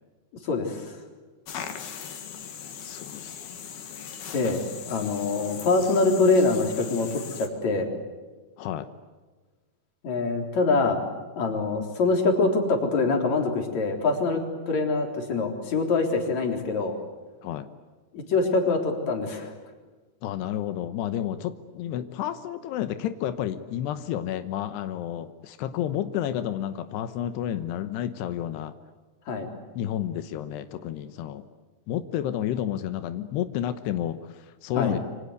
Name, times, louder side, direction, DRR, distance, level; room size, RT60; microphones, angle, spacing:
voice 1, 0.4-1.0 4.3-4.6 4.9-7.9 10.0-11.0 11.4-16.9 18.1-19.5 29.3-29.5 34.8-35.0, left 3 dB, 45° left, 3 dB, 4.9 m, -24 dB
sound 1, 1.5-7.5, left 8 dB, 70° left, 4.1 m, -39 dB
voice 2, 2.8-3.3 8.6-8.9 17.4-17.7 20.2-28.7 29.8-31.4 31.9-35.0, left 11 dB, 90° left, 10 dB, 3.2 m, -31 dB
28.0 x 25.0 x 8.1 m, 1.3 s
omnidirectional pair, 4.6 m